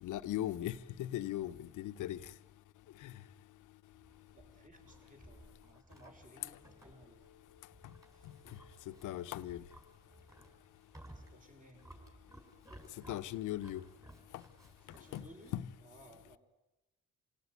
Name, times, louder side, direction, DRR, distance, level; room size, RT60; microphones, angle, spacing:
voice 1, 0.0-2.2 3.0-3.1 8.9-9.6 13.1-13.8 15.1-15.2 15.5-15.7, left 13 dB, 85° left, 1.0 m, -38 dB
Livestock farm animals working animals, 3.9-15.6, right 1 dB, 10° right, 6.1 m, -58 dB
voice 2, 4.3-7.2 8.1-8.3 11.1-11.9 14.9-16.4, right 1 dB, 25° right, 5.6 m, -60 dB
27.0 x 17.5 x 9.5 m
cardioid pair, 90°, 30 cm